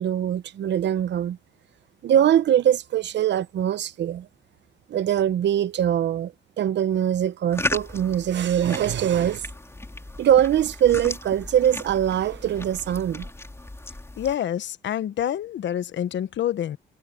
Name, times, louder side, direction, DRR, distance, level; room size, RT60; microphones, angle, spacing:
voice 1, 0.0-1.4 2.0-4.3 4.9-9.4 10.2-13.3, right 10 dB, 65° right, 0.9 m, -22 dB
sound 1, 7.5-14.4, left 2 dB, 15° left, 4.1 m, -35 dB
voice 2, 14.2-16.8, left 10 dB, 65° left, 1.2 m, -27 dB
cardioid pair, 90°, 20 cm